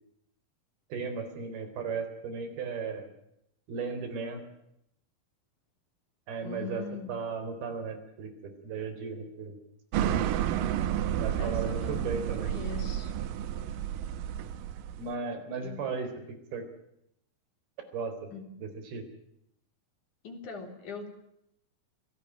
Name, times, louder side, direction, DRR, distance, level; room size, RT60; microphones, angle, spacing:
voice 1, 0.9-3.1 3.7-4.5 6.3-6.8 7.1-9.6 10.0-10.3 11.2-12.6 15.0-16.7 17.9-18.3 18.6-19.1, right 5 dB, 90° right, 8 dB, 5.8 m, -36 dB
voice 2, 6.4-7.1 11.4-13.1 15.5-15.8 18.3-18.7 20.2-21.1, left 5 dB, 55° left, 5 dB, 4.9 m, -41 dB
sound 1, 9.9-15.1, right 11 dB, 70° right, 2.6 m, -31 dB
25.5 x 17.5 x 9.0 m, 0.78 s
omnidirectional pair, 4.3 m